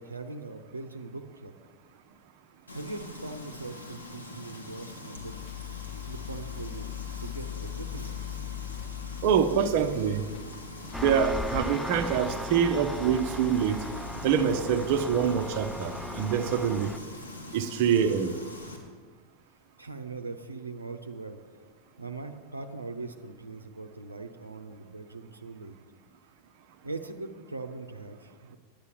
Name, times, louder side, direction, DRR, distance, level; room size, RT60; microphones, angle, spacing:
voice 1, 0.0-1.6 2.7-5.4 6.0-8.5 19.8-21.4 22.0-25.8 26.8-28.6, right 3 dB, 80° right, 5 dB, 0.8 m, -41 dB
Frying (food), 2.7-18.8, left 2 dB, 85° left, 1.9 m, -44 dB
sound 1, 5.2-16.7, left 10 dB, 35° left, 0.7 m, -42 dB
voice 2, 9.2-10.2 11.0-13.8 14.2-16.9 17.5-18.3, right 7 dB, 45° right, 6 dB, 0.8 m, -25 dB
Engine, 10.9-17.0, left 1 dB, ahead, 0.5 m, -37 dB
10.5 x 9.6 x 7.2 m, 1.6 s
figure-of-eight pair, 90°, 0 cm